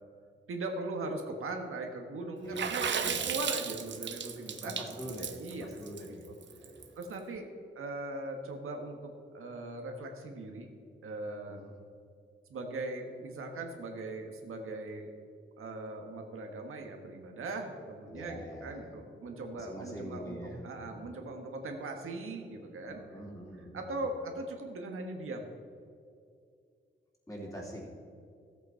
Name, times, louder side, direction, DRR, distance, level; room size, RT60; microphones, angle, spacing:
voice 1, 0.5-4.7 5.4-5.8 6.1-6.2 7.0-7.5 7.7-10.7 11.0-11.6 12.5-15.1 15.6-23.0 23.7-25.5, right 2 dB, 85° right, 3 dB, 1.4 m, -39 dB
voice 2, 2.4-3.3 4.6-7.0 11.4-11.8 18.0-18.9 19.2-21.0 22.8-24.0 27.3-27.8, equal, 15° left, -3 dB, 3.0 m, -44 dB
Water / Splash splatter, 2.6-7.0, right 7 dB, 60° right, 0.7 m, -35 dB
14.0 x 8.2 x 4.4 m, 2.3 s
cardioid pair, 95°, 21 cm